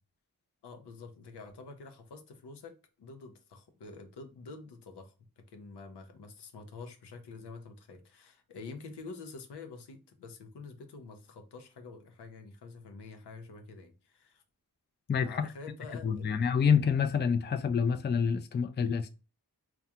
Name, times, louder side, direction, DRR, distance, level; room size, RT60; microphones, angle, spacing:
voice 1, 0.6-14.4 15.2-16.4, left 4 dB, 90° left, 0.6 m, -47 dB
voice 2, 16.0-19.1, left 6 dB, 30° left, 0.4 m, -27 dB
2.3 x 2.2 x 2.8 m
cardioid pair, 55°, 39 cm